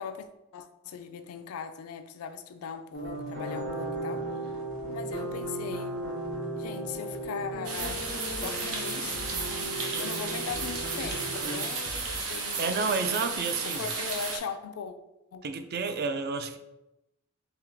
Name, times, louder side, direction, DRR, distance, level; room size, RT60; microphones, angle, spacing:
voice 1, 0.0-4.6 4.9-6.0 6.5-8.1 8.4-9.3 10.0-12.7 13.6-15.0 15.3-15.5, left 6 dB, 85° left, 0.3 m, -39 dB
sound 1, 2.9-11.6, right 1 dB, 60° right, 1.3 m, -36 dB
sound 2, 7.6-14.4, right 4 dB, 90° right, 0.8 m, -34 dB
sound 3, 7.8-13.5, left 1 dB, 10° left, 0.5 m, -45 dB
voice 2, 12.6-13.8 15.4-16.6, right 4 dB, 45° right, 0.3 m, -30 dB
3.5 x 2.8 x 3.4 m
head